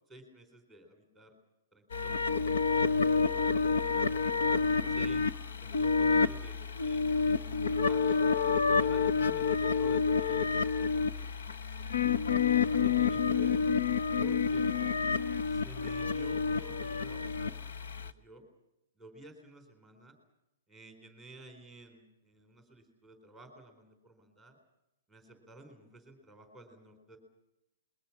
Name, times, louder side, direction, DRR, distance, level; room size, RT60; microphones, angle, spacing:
voice 1, 0.1-1.4 1.7-4.1 4.6-8.2 8.6-10.4 10.6-11.4 12.6-13.5 14.2-14.7 15.5-18.5 19.0-20.2 20.7-24.6 25.1-27.2, right 1 dB, ahead, 3 dB, 4.2 m, -53 dB
sound 1, 1.9-18.1, left 5 dB, 85° left, 1.1 m, -29 dB
28.0 x 22.0 x 6.1 m, 0.90 s
hypercardioid pair, 175°, 0 cm